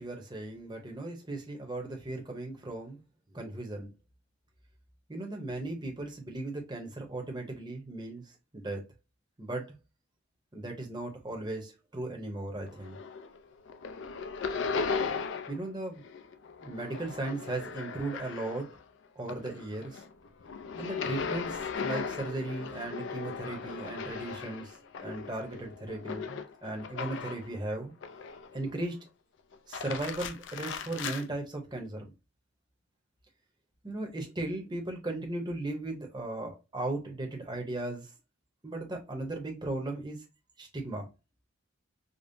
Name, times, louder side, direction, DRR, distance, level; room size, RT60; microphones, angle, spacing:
voice 1, 0.0-3.0 3.3-3.9 5.1-8.8 9.4-9.8 10.5-13.0 15.5-16.0 16.6-18.7 19.2-20.0 20.8-24.8 25.0-27.9 28.5-29.0 29.7-32.1 33.8-38.1 38.6-40.2 40.6-41.1, right 2 dB, 20° right, 0.7 m, -37 dB
sound 1, 12.7-13.4 13.7-15.7 16.0-18.8 19.2-27.5 28.0-28.7 29.5-31.2, left 5 dB, 55° left, 0.4 m, -37 dB
5.0 x 2.0 x 2.6 m
head